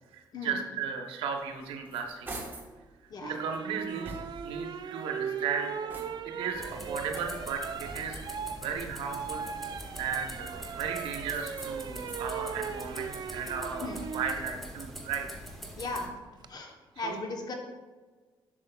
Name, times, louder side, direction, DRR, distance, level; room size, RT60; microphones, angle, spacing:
voice 1, 0.1-2.3 3.2-4.1 4.4-5.7 6.3-8.2 8.5-9.5 10.0-15.3 17.0-17.2, right 6 dB, 90° right, 3 dB, 0.8 m, -35 dB
sound 1, 1.4-2.8 3.3-4.6 5.2-6.4 7.1-8.4 9.3-10.3 10.9-12.3 12.7-14.4, right 2 dB, 20° right, 1.2 m, -47 dB
sound 2, 3.2-14.4 16.1-16.5, right 7 dB, 50° right, 0.4 m, -38 dB
sound 3, 6.5-16.1, equal, ahead, 1.2 m, -44 dB
voice 2, 15.8-16.1 16.5-17.5, left 2 dB, 45° left, 3 dB, 0.9 m, -37 dB
7.6 x 6.2 x 2.3 m, 1.3 s
cardioid pair, 85°, 9 cm